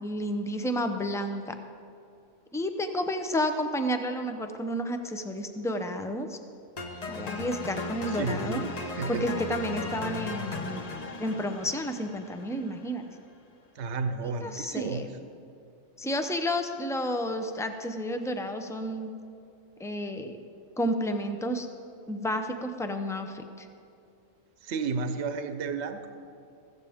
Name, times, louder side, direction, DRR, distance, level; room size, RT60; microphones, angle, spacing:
voice 1, 0.0-1.5 2.5-6.4 7.1-8.6 9.1-10.8 11.2-13.0 14.2-15.1 16.0-19.1 19.8-20.4 20.8-21.7 22.1-23.7, equal, 5° left, 6 dB, 0.4 m, -31 dB
sound 1, 6.8-12.9, left 3 dB, 35° left, 0.9 m, -37 dB
voice 2, 8.1-9.3 13.8-15.1 24.6-26.1, right 4 dB, 60° right, 8 dB, 1.0 m, -32 dB
15.0 x 15.0 x 3.6 m, 2.5 s
omnidirectional pair, 1.4 m